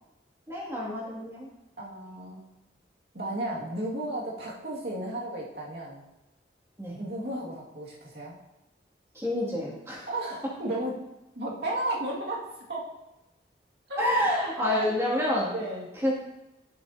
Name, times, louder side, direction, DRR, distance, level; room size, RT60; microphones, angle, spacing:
voice 1, 0.5-1.5 6.8-7.0 9.1-10.1 14.0-15.5 16.0-16.1, left 1 dB, 15° right, -6 dB, 2.4 m, -28 dB
voice 2, 1.8-2.4 3.1-6.0 7.0-8.4 10.1-10.9 11.4-12.9 13.9-14.9 15.5-15.9, right 1 dB, 70° right, -4 dB, 2.2 m, -34 dB
11.0 x 6.8 x 2.8 m, 0.94 s
head